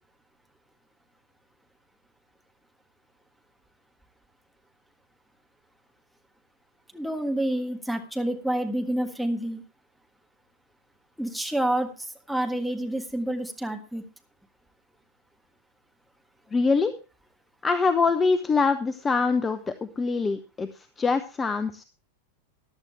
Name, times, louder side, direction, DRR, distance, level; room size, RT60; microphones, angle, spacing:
voice 1, 6.9-9.6 11.2-14.0, right 1 dB, ahead, 3 dB, 1.6 m, -28 dB
voice 2, 16.5-16.9 17.6-21.8, left 4 dB, 15° left, 11 dB, 0.7 m, -24 dB
14.5 x 10.5 x 3.3 m, 0.32 s
figure-of-eight pair, 90°, 0 cm